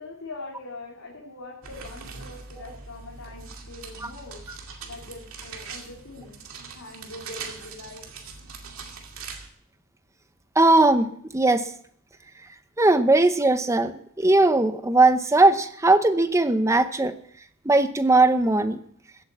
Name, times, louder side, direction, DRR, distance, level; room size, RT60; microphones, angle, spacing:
voice 1, 0.0-4.4 4.8-6.3 6.7-8.0, left 2 dB, 90° left, -4 dB, 2.7 m, -42 dB
sound 1, 1.6-9.5, right 4 dB, 70° right, 2.3 m, -41 dB
voice 2, 10.6-11.1 11.3-11.7 12.8-13.9 14.2-17.1 17.6-18.8, right 2 dB, 15° right, 10 dB, 0.8 m, -19 dB
15.5 x 8.5 x 7.4 m, 0.65 s
head